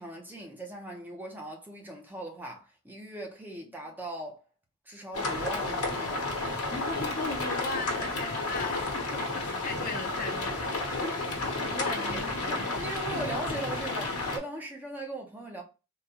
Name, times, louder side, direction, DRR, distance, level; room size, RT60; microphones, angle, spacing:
voice 1, 0.0-4.4 4.9-6.3 11.6-15.6, right 1 dB, 10° right, 0.6 m, -39 dB
sound 1, 5.1-14.4, left 2 dB, 80° left, 1.1 m, -32 dB
voice 2, 6.7-11.1 11.6-12.7 13.1-13.2, left 3 dB, 40° left, 0.6 m, -37 dB
3.8 x 2.2 x 2.8 m
head